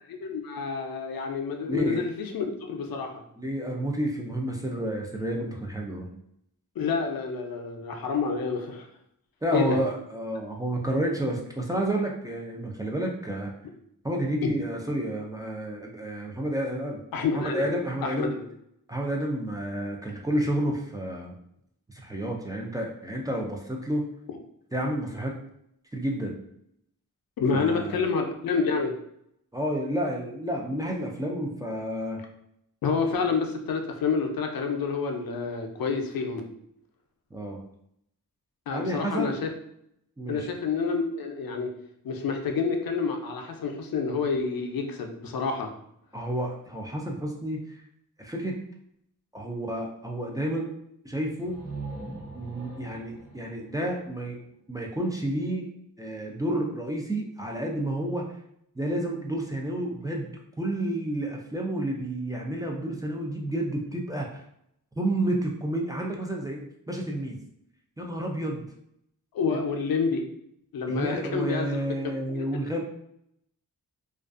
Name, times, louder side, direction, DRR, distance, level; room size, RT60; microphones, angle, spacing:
voice 1, 0.1-3.2 6.8-8.9 9.5-9.8 14.4-14.5 17.1-17.7 18.0-18.5 27.4-28.9 32.8-36.4 38.7-39.5 40.3-41.7 42.0-45.7 69.3-70.2 70.7-71.8 72.3-72.4, left 5 dB, 80° left, 4 dB, 0.5 m, -28 dB
voice 2, 1.7-2.0 3.4-6.1 9.4-13.5 14.0-17.2 17.5-18.3 18.9-21.3 21.9-24.1 24.7-25.4 25.9-26.4 27.5-28.0 29.5-32.2 33.2-33.3 37.3-37.6 38.7-39.3 40.2-40.5 46.1-47.8 48.2-48.6 49.3-50.7 51.0-51.6 52.3-54.4 54.7-55.7 56.0-58.3 58.8-64.4 65.0-67.4 68.0-68.6 69.5-69.6 70.9-72.8, right 1 dB, 10° right, -1 dB, 0.3 m, -30 dB
sound 1, 51.4-55.1, right 3 dB, 45° right, 1.0 m, -42 dB
2.4 x 2.3 x 2.4 m, 0.74 s
wide cardioid pair, 90°, 35 cm